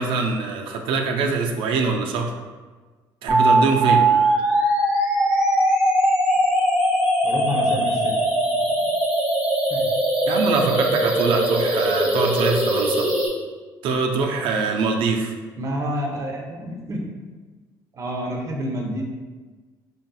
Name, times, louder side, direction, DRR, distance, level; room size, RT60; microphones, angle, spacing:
voice 1, 0.0-2.3 3.2-4.1 10.3-13.1 13.8-15.3, right 4 dB, 75° right, 2 dB, 0.5 m, -23 dB
sound 1, 3.3-13.3, right 1 dB, 10° right, 1.1 m, -20 dB
voice 2, 7.2-8.2 9.7-9.9 15.6-17.1 17.9-19.1, equal, 35° right, 0 dB, 0.8 m, -28 dB
4.1 x 3.4 x 2.3 m, 1.4 s
cardioid pair, 100°, 9 cm